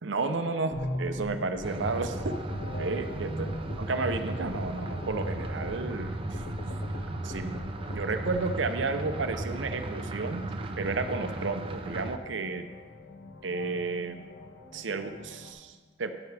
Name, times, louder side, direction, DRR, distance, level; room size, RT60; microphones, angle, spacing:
voice 1, 0.0-2.3 2.8-3.5 3.8-6.4 7.2-7.5 7.9-10.4 10.8-12.6 13.4-14.2 14.7-16.2, right 3 dB, 80° right, 8 dB, 0.7 m, -32 dB
sound 1, 0.7-15.5, left 1 dB, 75° left, 1.3 m, -43 dB
sound 2, 0.7-8.4, left 3 dB, 55° left, 0.4 m, -43 dB
sound 3, 1.6-12.2, right 2 dB, 30° right, 0.5 m, -36 dB
10.5 x 9.5 x 3.4 m, 1.4 s
head